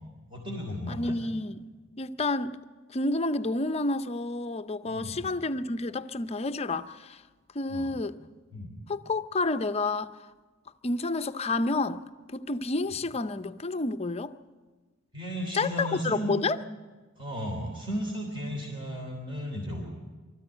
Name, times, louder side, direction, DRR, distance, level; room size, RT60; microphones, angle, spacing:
voice 1, 0.3-1.1 4.9-5.3 7.7-7.9 8.5-8.7 15.1-16.3 17.2-19.8, equal, 25° right, 3.2 m, -34 dB
voice 2, 0.9-1.7 2.0-2.6 2.9-7.2 7.5-8.2 8.9-10.2 10.8-12.0 12.3-14.4 15.5-16.6, left 2 dB, 30° left, 0.6 m, -29 dB
23.5 x 14.0 x 8.9 m
head